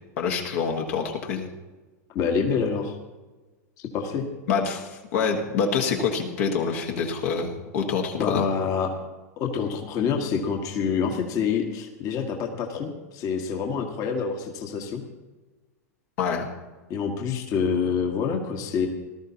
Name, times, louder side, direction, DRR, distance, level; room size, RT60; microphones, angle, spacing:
voice 1, 0.2-1.5 4.5-8.5 16.2-16.5, left 6 dB, 60° left, 1 dB, 1.5 m, -26 dB
voice 2, 2.1-3.0 3.8-4.2 8.2-8.9 9.4-15.0 16.9-18.9, left 6 dB, 40° left, 3 dB, 1.5 m, -27 dB
18.5 x 12.5 x 2.9 m, 1.2 s
hypercardioid pair, 95°, 9 cm